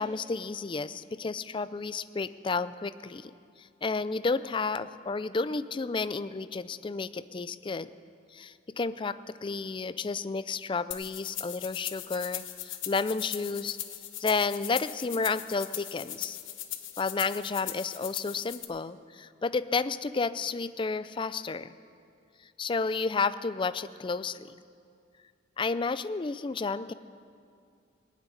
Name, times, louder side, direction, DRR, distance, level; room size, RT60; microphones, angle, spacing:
voice 1, 0.0-3.3 3.6-7.9 8.3-13.8 14.2-16.4 17.0-21.7 22.6-24.5 25.6-26.9, left 4 dB, 25° left, 14 dB, 0.4 m, -31 dB
sound 1, 10.9-18.6, left 12 dB, 90° left, 1.0 m, -39 dB
19.5 x 7.4 x 9.8 m, 2.4 s
head